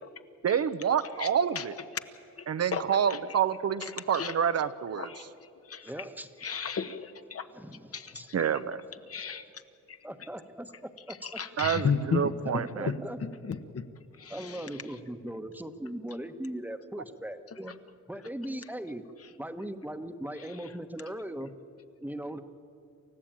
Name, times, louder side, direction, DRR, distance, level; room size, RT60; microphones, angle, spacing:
voice 1, 0.4-1.8 2.5-5.1 8.3-8.8 11.6-12.9, right 8 dB, 50° right, 12 dB, 0.8 m, -28 dB
voice 2, 2.7-3.2 3.8-4.3 4.9-5.2 5.7-6.0 6.4-7.4 7.9-8.2 9.1-9.5 9.9-10.0 11.2-12.3 12.9-13.0 13.2-13.8 14.2-14.7, left 6 dB, 45° left, 9 dB, 1.2 m, -33 dB
voice 3, 5.8-6.3 7.5-8.3 10.0-11.4 12.5-13.2 14.3-17.7 18.1-19.0 19.4-21.5 22.0-22.4, right 1 dB, 5° right, 8 dB, 1.2 m, -39 dB
28.0 x 14.0 x 9.0 m, 2.5 s
cardioid pair, 105°, 32 cm